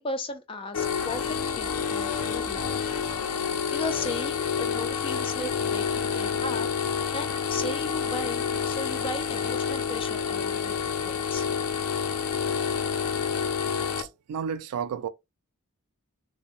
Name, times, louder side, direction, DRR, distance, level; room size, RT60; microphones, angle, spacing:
voice 1, 0.0-2.8 3.3-10.8 11.0-11.5, left 2 dB, 25° left, 0.4 m, -36 dB
sound 1, 0.7-14.0, left 7 dB, 90° left, 0.4 m, -28 dB
voice 2, 14.0-15.1, right 7 dB, 85° right, 0.3 m, -32 dB
2.5 x 2.0 x 2.9 m
head